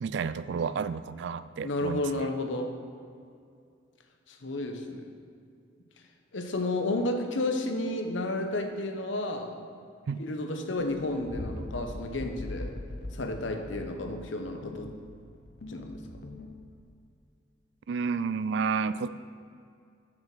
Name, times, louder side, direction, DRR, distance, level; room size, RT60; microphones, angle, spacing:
voice 1, 0.0-2.2 10.1-10.2 17.9-19.1, right 5 dB, 70° right, 15 dB, 0.3 m, -31 dB
voice 2, 1.6-2.7 4.3-5.1 6.3-9.6 10.2-12.8 13.1-14.9 15.7-16.0, left 2 dB, 85° left, 5 dB, 0.9 m, -32 dB
sound 1, 10.8-17.0, left 2 dB, 55° left, 0.7 m, -41 dB
7.3 x 6.1 x 6.1 m, 2.4 s
head